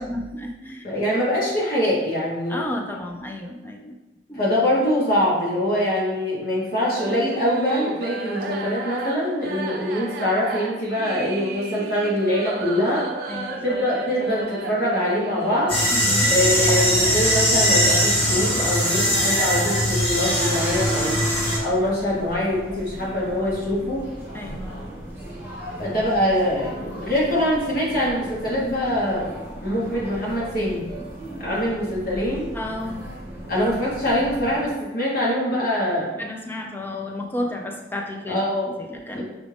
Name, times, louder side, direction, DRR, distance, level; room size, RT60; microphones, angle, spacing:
voice 1, 0.0-0.8 2.5-3.9 4.3-4.4 13.3-13.8 15.9-16.3 24.3-24.8 32.5-33.1 36.2-38.4 38.8-39.2, left 1 dB, 10° left, 1 dB, 0.3 m, -32 dB
voice 2, 0.8-2.7 4.4-13.0 13.6-15.7 16.2-21.2 21.6-24.0 25.8-29.3 29.6-30.8 31.4-32.5 33.5-36.2 38.3-38.7 39.2-39.3, left 1 dB, 50° left, -5 dB, 1.1 m, -23 dB
sound 1, 7.0-20.9, right 3 dB, 50° right, 0.5 m, -34 dB
sound 2, 15.7-21.6, equal, 30° left, 1.0 m, -20 dB
sound 3, 20.4-34.7, equal, 10° right, 1.1 m, -38 dB
5.1 x 2.4 x 3.3 m, 1.1 s
head